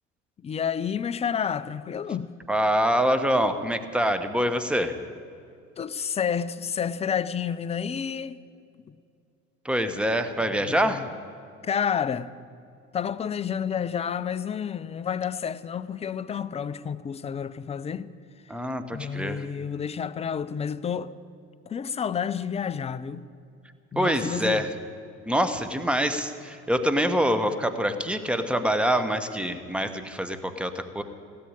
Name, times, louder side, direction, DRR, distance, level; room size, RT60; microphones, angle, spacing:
voice 1, 0.4-2.3 5.8-8.4 10.5-11.1 11.6-12.3 12.9-18.1 18.9-21.1 21.7-23.3 23.9-24.7, left 7 dB, 15° left, 0.5 m, -30 dB
voice 2, 2.5-5.0 9.6-11.0 18.5-19.4 24.0-24.7 25.3-31.0, equal, 5° right, 1.1 m, -25 dB
17.0 x 8.7 x 9.8 m
figure-of-eight pair, 65°, 40 cm